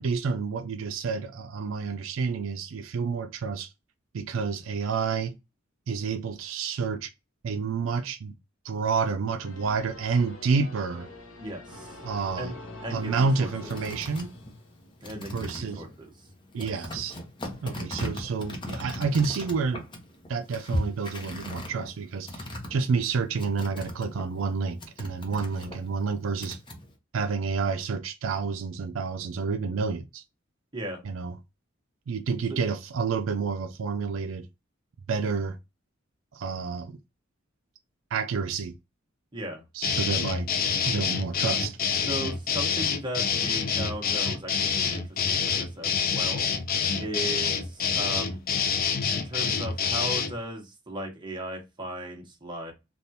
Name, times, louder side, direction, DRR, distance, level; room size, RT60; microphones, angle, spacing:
voice 1, 0.0-3.7 4.1-5.3 5.9-7.1 7.4-8.3 8.6-11.1 12.0-12.5 12.9-14.3 15.3-15.8 16.5-17.2 17.6-19.8 20.3-22.5 22.7-26.6 27.1-30.2 31.0-31.3 32.1-34.5 35.1-35.6 36.3-36.9 38.1-38.7 39.7-40.5 40.8-41.8, right 5 dB, 75° right, 0.4 m, -29 dB
sound 1, 9.4-15.1, left 2 dB, 85° left, 1.0 m, -44 dB
voice 2, 11.4-12.0 12.4-12.5 12.8-13.5 15.0-16.1 16.6-16.7 30.7-31.0 32.5-32.6 39.3-39.6 42.1-46.5 47.0-48.4 49.1-52.7, right 1 dB, 25° right, 1.0 m, -37 dB
sound 2, 13.0-24.5 24.8-26.9, equal, 25° left, 0.8 m, -38 dB
sound 3, 39.8-50.3, left 6 dB, 45° left, 0.5 m, -27 dB
3.4 x 2.4 x 2.7 m
head